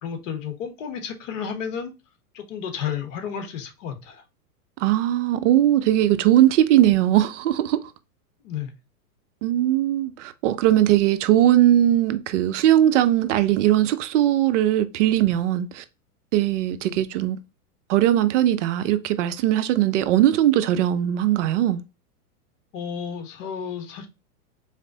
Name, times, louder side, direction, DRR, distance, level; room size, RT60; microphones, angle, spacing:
voice 1, 0.0-1.9 2.3-4.2 8.4-8.7 22.7-24.1, left 7 dB, 55° left, 1.2 m, -32 dB
voice 2, 4.8-7.8 9.4-15.8 16.3-17.4 17.9-21.8, right 12 dB, 55° right, 0.6 m, -19 dB
4.0 x 3.3 x 2.7 m
hypercardioid pair, 125°, 45 cm